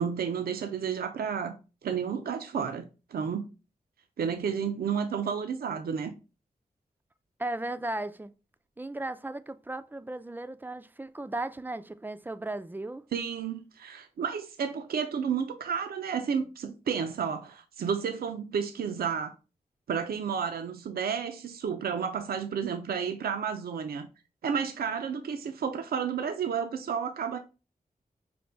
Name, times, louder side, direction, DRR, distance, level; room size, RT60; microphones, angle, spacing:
voice 1, 0.0-1.6 1.8-2.9 3.1-3.5 4.2-6.1 13.1-19.3 19.9-24.1 24.4-27.4, right 7 dB, 80° right, 0.4 m, -31 dB
voice 2, 7.4-8.3 8.8-13.0, right 2 dB, 10° right, 0.3 m, -36 dB
5.1 x 2.2 x 3.3 m
cardioid pair, 65°, 16 cm